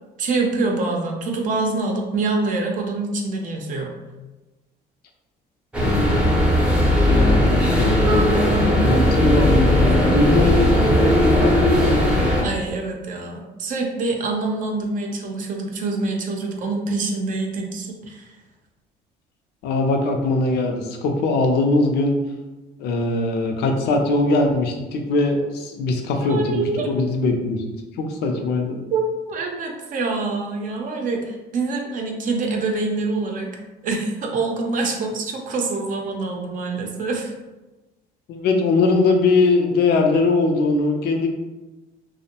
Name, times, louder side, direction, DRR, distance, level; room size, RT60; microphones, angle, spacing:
voice 1, 0.2-3.9 12.4-18.3 26.2-26.9 28.9-33.5 33.8-37.3, right 3 dB, 50° right, 1 dB, 0.5 m, -25 dB
sound 1, 5.7-12.4, equal, 5° right, 0.5 m, -17 dB
voice 2, 5.8-6.3 7.1-12.4 19.6-22.2 22.8-27.6 28.0-28.8 38.3-41.3, left 3 dB, 75° left, 3 dB, 0.5 m, -21 dB
2.5 x 2.0 x 2.8 m, 1.1 s
cardioid pair, 110°, 17 cm